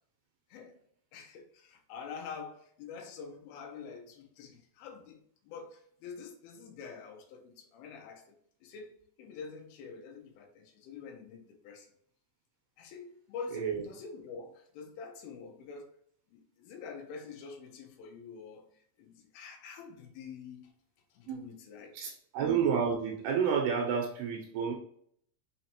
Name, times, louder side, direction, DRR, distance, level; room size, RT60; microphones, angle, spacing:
voice 1, 1.1-11.9 12.8-15.9 16.3-18.7 19.0-20.7 21.1-22.0, left 5 dB, 75° left, 2.4 m, -46 dB
voice 2, 13.5-13.8 21.3-21.4 21.9-24.7, right 7 dB, 80° right, 2.5 m, -30 dB
6.4 x 2.9 x 2.8 m
omnidirectional pair, 5.0 m